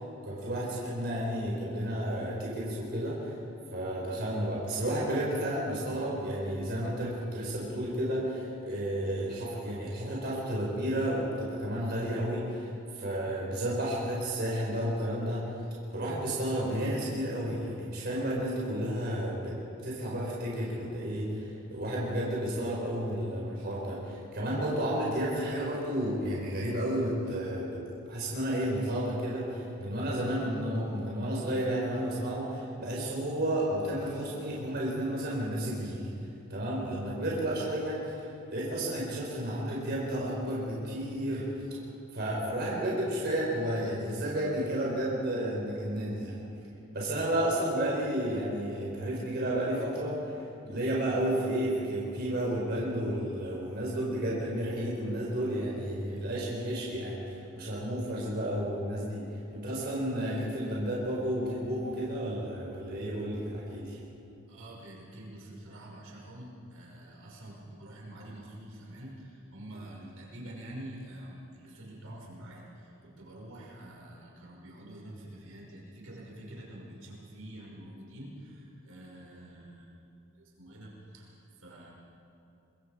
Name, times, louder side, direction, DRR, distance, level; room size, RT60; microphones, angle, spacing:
voice 1, 0.2-3.4 3.7-12.7 12.9-15.6 15.9-19.5 19.8-36.1 36.5-41.6 42.1-46.4 46.9-50.2 50.6-59.2 59.5-64.0, right 1 dB, 50° right, -4 dB, 4.5 m, -32 dB
voice 2, 64.5-79.9 80.3-81.9, right 1 dB, 80° right, -3 dB, 5.7 m, -47 dB
25.5 x 22.5 x 5.1 m, 2.8 s
head